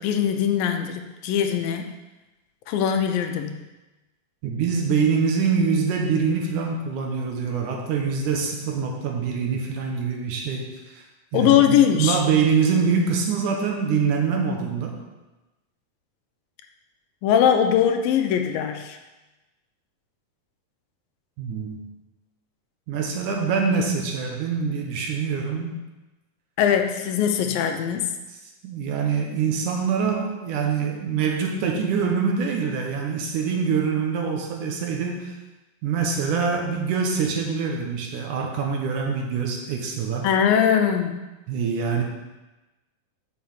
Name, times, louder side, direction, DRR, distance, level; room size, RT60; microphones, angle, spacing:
voice 1, 0.0-1.9 2.7-3.6 11.3-12.2 17.2-19.0 26.6-28.1 40.2-41.2, left 9 dB, 80° left, 5 dB, 2.4 m, -21 dB
voice 2, 4.4-11.0 11.3-11.6 12.0-15.0 21.4-21.9 22.9-25.7 28.6-35.4 35.8-40.3 41.5-42.0, right 5 dB, 70° right, 1 dB, 2.3 m, -24 dB
6.5 x 5.7 x 7.2 m, 1.1 s
omnidirectional pair, 4.0 m